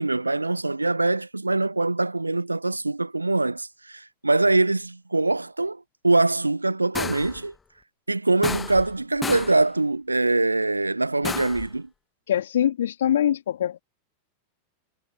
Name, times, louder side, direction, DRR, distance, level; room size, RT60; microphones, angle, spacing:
voice 1, 0.0-7.5 8.1-11.9, right 2 dB, 85° right, 1.1 m, -23 dB
sound 1, 6.9-7.4 8.4-8.9 9.2-9.6 11.2-11.7, left 5 dB, 15° left, 1.5 m, -32 dB
voice 2, 12.3-13.8, left 10 dB, 60° left, 3.1 m, -23 dB
figure-of-eight pair, 90°, 0 cm